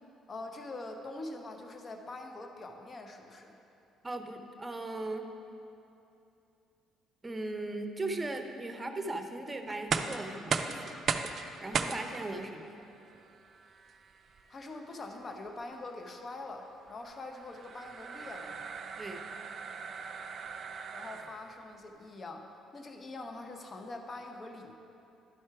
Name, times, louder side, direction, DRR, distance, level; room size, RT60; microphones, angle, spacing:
voice 1, 0.3-3.5 14.5-18.6 20.9-24.7, left 2 dB, 40° left, 4 dB, 0.9 m, -44 dB
voice 2, 4.0-5.3 7.2-11.0 11.6-12.8 19.0-19.2, right 2 dB, 25° right, 5 dB, 0.8 m, -38 dB
sound 1, 9.7-21.6, right 5 dB, 50° right, 0.4 m, -38 dB
11.5 x 4.3 x 4.8 m, 2.8 s
hypercardioid pair, 60°, 0 cm